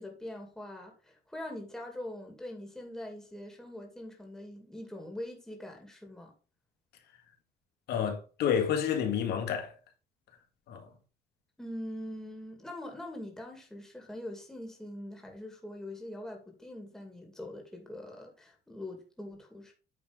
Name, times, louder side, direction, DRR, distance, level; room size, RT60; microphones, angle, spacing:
voice 1, 0.0-6.3 11.6-19.7, left 1 dB, 5° left, 2.4 m, -43 dB
voice 2, 7.9-9.7 10.7-10.9, left 8 dB, 75° left, 1.9 m, -29 dB
8.9 x 3.8 x 5.1 m
cardioid pair, 110°, 17 cm